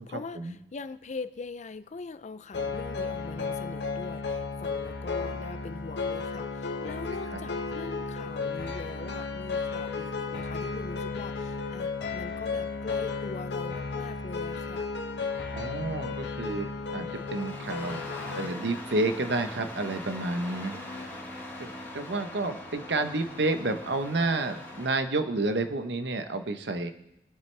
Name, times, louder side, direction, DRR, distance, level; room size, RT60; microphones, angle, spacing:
voice 1, 0.0-14.9 20.7-21.2, left 4 dB, 40° left, 13 dB, 0.5 m, -42 dB
sound 1, 2.5-18.5, left 4 dB, 75° left, 1.2 m, -34 dB
voice 2, 15.5-18.0 18.4-20.8 21.6-26.9, right 2 dB, 70° right, 8 dB, 0.9 m, -30 dB
Engine starting, 16.9-25.0, left 1 dB, 15° left, 3.8 m, -42 dB
22.0 x 7.6 x 3.3 m, 0.89 s
head